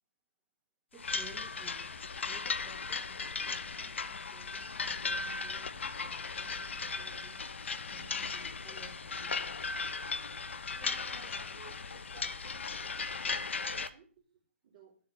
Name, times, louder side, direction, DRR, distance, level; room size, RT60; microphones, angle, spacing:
voice 1, 0.9-2.0 2.2-7.4 7.8-9.5, right 2 dB, 10° right, -3 dB, 2.1 m, -56 dB
sound 1, 1.0-13.9, left 4 dB, 60° left, 0.7 m, -37 dB
voice 2, 10.7-15.0, right 7 dB, 35° right, -2 dB, 3.1 m, -58 dB
11.5 x 6.7 x 3.4 m, 0.42 s
figure-of-eight pair, 130°, 7 cm